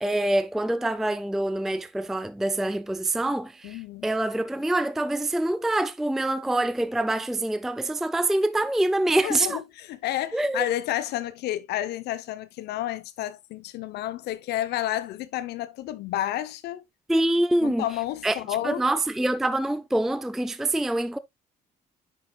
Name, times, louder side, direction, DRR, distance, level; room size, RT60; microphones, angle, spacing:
voice 1, 0.0-9.6 10.3-10.7 17.1-17.9 18.2-18.4 18.6-21.2, right 1 dB, ahead, 0.4 m, -25 dB
voice 2, 3.6-4.1 9.2-16.8 17.6-18.9, left 13 dB, 80° left, 0.8 m, -31 dB
9.4 x 6.0 x 2.3 m
cardioid pair, 110°, 17 cm